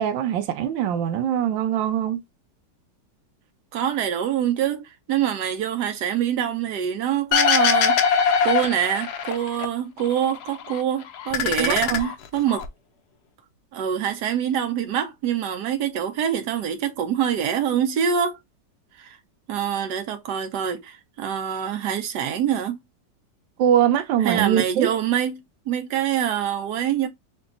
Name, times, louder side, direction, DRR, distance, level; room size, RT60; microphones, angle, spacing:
voice 1, 0.0-2.2 11.6-12.1 23.6-24.9, right 10 dB, 90° right, 1.3 m, -22 dB
voice 2, 3.7-12.6 13.7-18.4 19.0-19.2 19.5-22.8 24.2-27.1, right 9 dB, 70° right, 1.2 m, -25 dB
sound 1, 7.3-9.7 10.0-10.8 11.1-12.7, left 6 dB, 70° left, 1.1 m, -22 dB
5.9 x 2.2 x 2.5 m
omnidirectional pair, 2.0 m